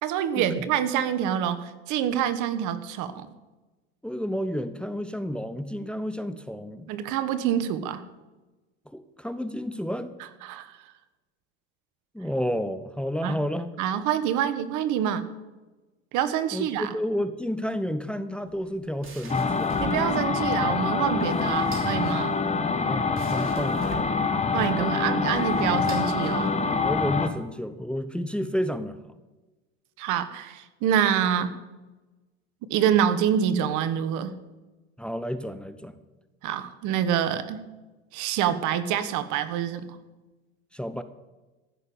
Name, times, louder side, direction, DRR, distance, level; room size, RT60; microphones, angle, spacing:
voice 1, 0.0-3.3 6.9-8.0 10.4-10.7 13.2-13.4 13.8-15.3 16.1-16.9 19.8-22.4 24.5-26.6 30.0-31.5 32.6-34.3 36.4-37.7 38.1-39.9, right 9 dB, 65° right, 12 dB, 1.4 m, -26 dB
voice 2, 4.0-6.9 8.9-10.1 12.1-13.7 16.5-19.9 22.9-24.3 26.8-29.0 35.0-36.0 40.7-41.0, equal, 5° left, 12 dB, 0.8 m, -31 dB
sound 1, 18.4-26.8, right 2 dB, 40° right, 3.2 m, -44 dB
sound 2, 19.3-27.3, left 4 dB, 20° left, 1.4 m, -25 dB
14.5 x 6.7 x 8.8 m, 1.2 s
supercardioid pair, 90°, 33 cm